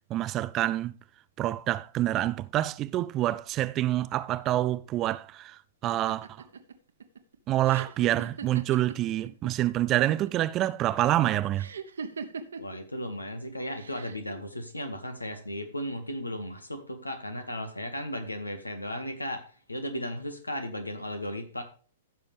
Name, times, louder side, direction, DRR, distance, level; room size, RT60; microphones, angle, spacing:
voice 1, 0.1-0.9 1.4-6.3 7.5-11.7, right 14 dB, 30° right, 0.4 m, -27 dB
sound 1, 5.9-9.5 9.8-10.5 11.6-12.8 13.8-14.3, right 5 dB, 70° right, 1.1 m, -40 dB
voice 2, 12.6-21.6, equal, 90° left, 1.8 m, -35 dB
15.0 x 6.3 x 3.4 m
figure-of-eight pair, 110°, 0 cm